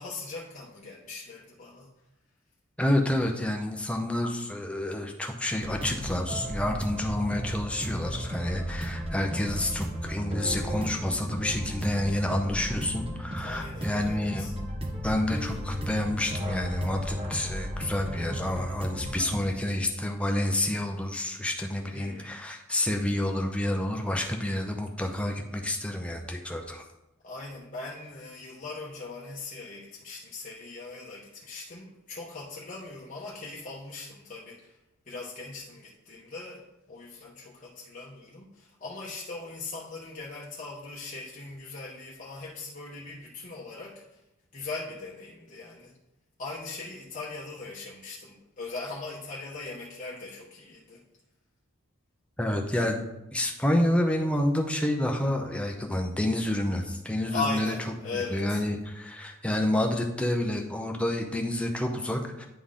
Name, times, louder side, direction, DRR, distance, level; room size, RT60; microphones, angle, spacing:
voice 1, 0.0-1.9 13.4-14.5 21.9-22.3 27.2-34.8 35.1-44.2 44.5-45.9 46.4-51.0 57.3-58.6, left 3 dB, 40° left, -4 dB, 0.9 m, -39 dB
voice 2, 2.8-14.5 15.0-26.8 52.4-53.0 53.3-57.7 58.3-62.5, left 1 dB, 5° left, 2 dB, 0.7 m, -29 dB
sound 1, 5.6-19.4, equal, 30° right, 0.9 m, -34 dB
9.8 x 3.9 x 3.7 m, 0.92 s
head